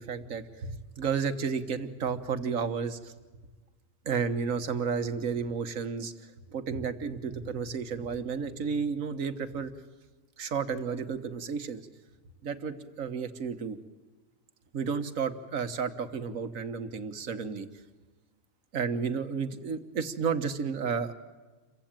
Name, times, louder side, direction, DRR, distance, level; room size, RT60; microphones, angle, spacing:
voice 1, 0.0-3.1 4.0-9.7 10.4-11.9 12.4-13.8 14.7-17.7 18.7-21.1, right 6 dB, 75° right, 10 dB, 1.6 m, -32 dB
28.0 x 15.5 x 8.9 m, 1.3 s
omnidirectional pair, 1.4 m